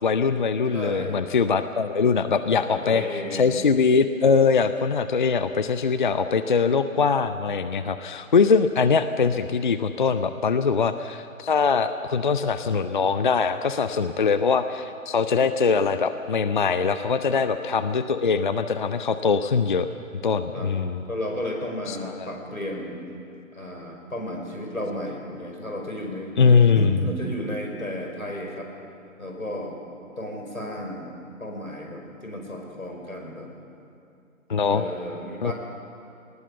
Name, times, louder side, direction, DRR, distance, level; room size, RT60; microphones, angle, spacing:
voice 1, 0.0-3.0 3.3-19.9 20.2-21.0 21.9-22.3 26.4-26.9 34.5-34.8 35.4-35.5, left 5 dB, 35° left, 11 dB, 0.6 m, -22 dB
voice 2, 0.7-1.2 2.7-3.6 17.3-17.4 20.5-20.7 21.1-23.0 23.5-26.4 26.8-28.7 29.2-29.8 30.2-33.5 34.7-35.5, left 1 dB, 85° left, 1 dB, 5.4 m, -33 dB
19.5 x 19.5 x 8.0 m, 2.6 s
figure-of-eight pair, 135°, 41 cm